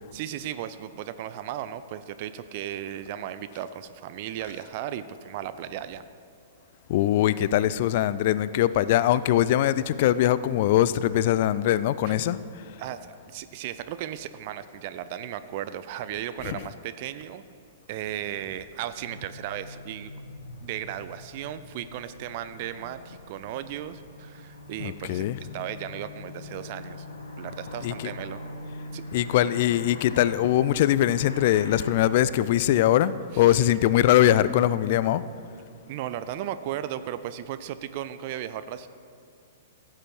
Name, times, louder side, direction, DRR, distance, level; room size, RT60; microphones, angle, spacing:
voice 1, 0.1-6.0 12.1-12.2 12.8-17.4 17.9-20.1 20.6-25.2 25.5-27.1 27.4-28.4 28.9-29.0 33.3-33.6 35.9-38.9, right 11 dB, 45° right, 0.4 m, -35 dB
voice 2, 6.9-12.8 16.4-16.6 24.8-25.4 27.8-28.1 29.1-35.2, left 12 dB, 45° left, 0.3 m, -22 dB
sound 1, 19.0-32.1, left 2 dB, 70° left, 1.4 m, -43 dB
15.0 x 7.6 x 4.6 m
figure-of-eight pair, 105°, 0 cm